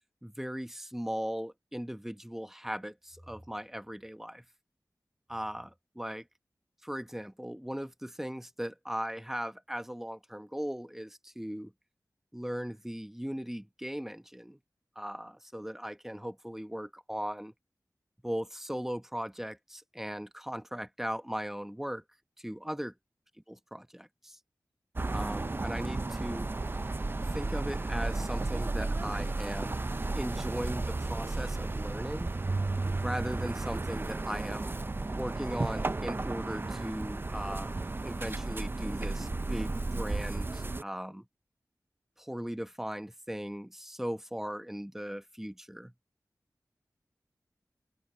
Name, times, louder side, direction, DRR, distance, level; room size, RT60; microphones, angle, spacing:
voice 1, 0.2-4.4 5.3-6.2 6.8-11.7 12.3-14.6 15.0-17.5 18.2-22.0 22.4-22.9 23.5-24.4 25.1-26.5 27.3-29.8 30.1-32.3 32.8-34.7 35.1-37.8 38.0-41.3 42.2-45.9, equal, 5° right, 1.1 m, -38 dB
sound 1, 25.0-40.8, right 2 dB, 35° right, 0.5 m, -33 dB
wide cardioid pair, 55°, 7 cm